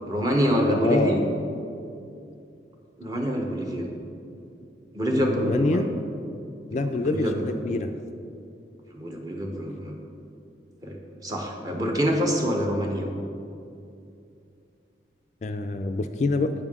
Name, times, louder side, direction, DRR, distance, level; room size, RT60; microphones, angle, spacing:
voice 1, 0.1-1.2 3.0-3.9 4.9-5.9 6.7-7.6 8.9-10.0 10.8-13.1, equal, 20° right, 1 dB, 0.8 m, -26 dB
voice 2, 0.7-1.2 5.1-5.9 6.7-7.9 15.4-16.5, left 3 dB, 40° left, 7 dB, 0.3 m, -26 dB
8.6 x 7.1 x 3.6 m, 2.6 s
head